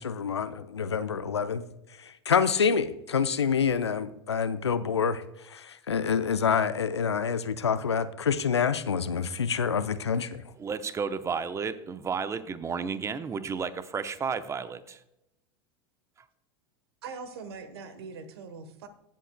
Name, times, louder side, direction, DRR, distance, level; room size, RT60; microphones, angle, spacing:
voice 1, 0.0-1.6 2.3-5.2 5.5-10.4, left 6 dB, 90° left, 13 dB, 0.5 m, -27 dB
voice 2, 10.6-15.0, right 5 dB, 20° right, 12 dB, 0.7 m, -32 dB
voice 3, 17.0-18.9, right 5 dB, 70° right, 11 dB, 1.2 m, -42 dB
16.0 x 7.7 x 2.2 m, 0.85 s
hypercardioid pair, 90°, 14 cm